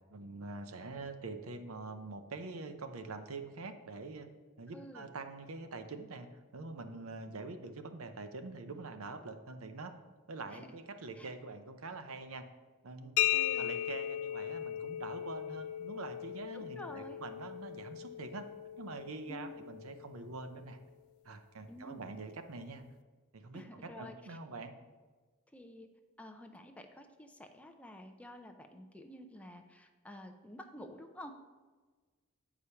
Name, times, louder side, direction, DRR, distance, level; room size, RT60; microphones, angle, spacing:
voice 1, 0.1-4.3 4.6-10.0 10.3-12.4 12.8-13.3 13.5-18.5 18.8-20.8 21.2-22.9 23.3-24.8, right 3 dB, 80° right, 8 dB, 0.7 m, -45 dB
voice 2, 4.7-5.1 10.5-10.7 11.2-11.3 13.3-13.7 16.5-17.2 19.3-19.5 21.7-22.0 23.5-24.4 25.5-25.9 26.2-31.3, left 1 dB, 5° left, 5 dB, 0.5 m, -50 dB
sound 1, 13.2-20.7, left 11 dB, 75° left, 0.3 m, -37 dB
8.4 x 4.9 x 5.6 m, 1.4 s
head